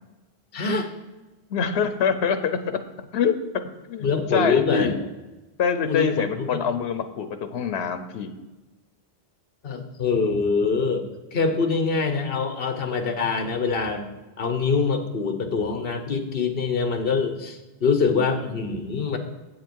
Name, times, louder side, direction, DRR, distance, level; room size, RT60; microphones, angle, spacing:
voice 1, 0.5-0.9 4.0-5.0 5.9-6.6 9.6-14.1 14.4-19.2, left 4 dB, 65° left, 7 dB, 1.2 m, -24 dB
voice 2, 1.5-2.8 3.1-3.4 3.9-4.9 5.6-8.3, left 6 dB, 90° left, 10 dB, 0.9 m, -25 dB
8.0 x 7.7 x 4.6 m, 1.1 s
omnidirectional pair, 1.1 m